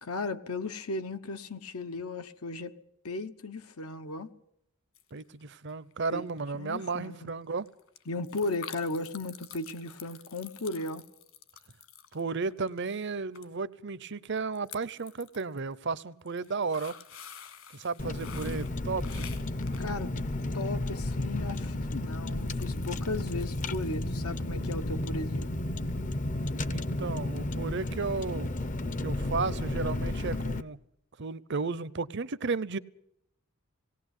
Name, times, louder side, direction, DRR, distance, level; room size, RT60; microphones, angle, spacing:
voice 1, 0.0-2.8 3.0-4.3 6.1-6.2 6.5-7.3 8.1-11.0 19.8-20.1 20.5-25.5, left 2 dB, 80° left, 1.1 m, -36 dB
sound 1, 4.9-5.4 5.7-6.1 6.4-6.5 6.7-6.8 7.0-13.1 13.3-13.5 13.7-13.9 14.4-15.6 16.1-20.5 21.5-21.7 22.1-24.1 24.3-24.4, left 8 dB, 60° left, 1.9 m, -49 dB
voice 2, 5.1-7.7 12.1-17.0 17.7-19.3 26.7-28.5 29.0-30.8 31.2-32.8, right 4 dB, 50° right, 0.7 m, -34 dB
Car, 18.0-30.6, left 1 dB, 35° left, 0.7 m, -32 dB
18.5 x 18.0 x 8.2 m
head